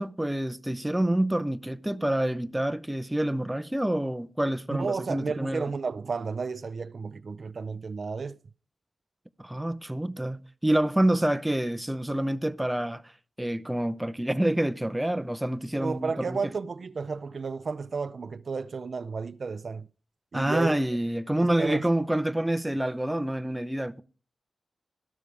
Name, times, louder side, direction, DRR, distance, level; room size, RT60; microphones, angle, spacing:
voice 1, 0.0-5.7 9.4-13.0 13.4-16.5 20.3-24.0, right 1 dB, 5° right, 0.7 m, -27 dB
voice 2, 4.7-8.4 15.8-19.9 20.3-20.8 21.3-21.8, right 4 dB, 55° right, 0.5 m, -32 dB
13.5 x 12.0 x 3.4 m
wide cardioid pair, 125°, 0 cm